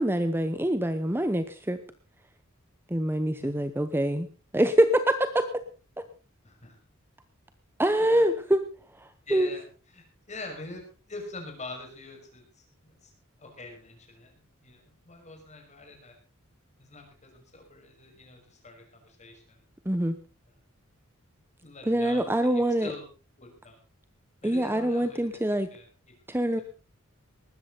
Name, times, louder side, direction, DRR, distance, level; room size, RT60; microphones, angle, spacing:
voice 1, 0.0-1.8 2.9-4.3 4.5-5.6 7.8-8.7 8.9-9.5 19.8-20.2 21.9-22.9 24.4-25.7 26.3-26.6, right 1 dB, 10° right, 10 dB, 0.9 m, -25 dB
voice 2, 6.4-6.8 8.0-8.2 9.3-9.6 9.9-10.8 11.1-13.1 13.4-16.1 16.8-19.7 21.6-23.0 23.4-23.8 24.4-25.4 25.7-25.9, left 2 dB, 35° left, 3 dB, 5.9 m, -44 dB
19.5 x 13.5 x 4.0 m, 0.35 s
head